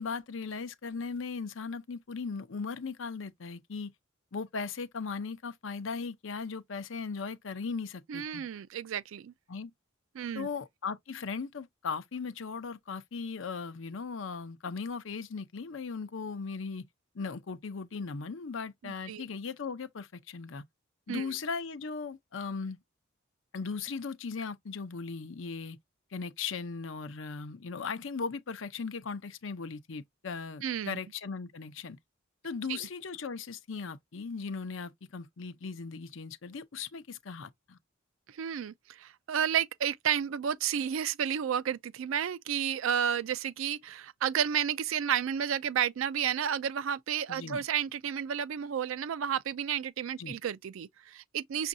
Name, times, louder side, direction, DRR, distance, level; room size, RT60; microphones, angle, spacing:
voice 1, 0.0-3.9 4.3-8.5 9.5-9.7 10.3-16.8 17.1-20.6 21.1-22.8 23.5-25.8 26.1-32.0 32.4-37.8 47.3-47.6 50.2-50.4, left 5 dB, 70° left, 0.6 m, -38 dB
voice 2, 8.1-9.3 10.1-10.5 18.8-19.2 21.1-21.3 30.6-31.0 32.7-32.8 38.3-51.7, right 8 dB, 75° right, 0.4 m, -31 dB
6.1 x 2.5 x 2.6 m
head